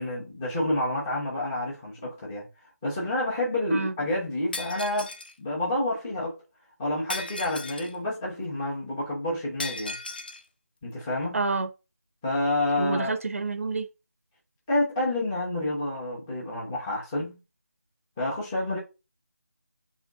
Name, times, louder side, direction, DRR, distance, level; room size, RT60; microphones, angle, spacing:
voice 1, 0.0-2.5 2.8-5.1 5.4-6.4 6.8-10.0 10.8-11.4 12.2-13.2 14.7-17.4 18.2-18.8, left 1 dB, 10° left, 0.8 m, -29 dB
Shatter, 4.5-5.3 7.1-8.0 9.6-10.4, left 2 dB, 35° left, 0.4 m, -36 dB
voice 2, 11.3-11.7 12.8-13.9, right 3 dB, 55° right, 0.6 m, -28 dB
3.6 x 3.0 x 3.6 m
figure-of-eight pair, 170°, 9 cm